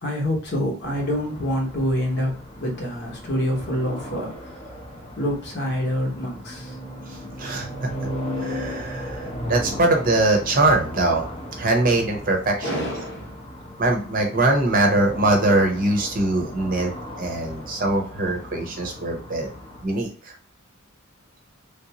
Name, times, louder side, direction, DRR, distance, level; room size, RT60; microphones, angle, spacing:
voice 1, 0.0-4.8 5.2-6.8 12.6-13.5, equal, 50° left, 0 dB, 1.0 m, -27 dB
sound 1, 0.8-19.8, equal, 25° left, 0.7 m, -36 dB
voice 2, 7.1-7.9 8.4-11.2 11.6-12.8 13.8-16.9 17.2-19.5 19.8-20.3, right 2 dB, 40° right, 2 dB, 0.7 m, -22 dB
3.3 x 2.6 x 2.8 m, 0.42 s
head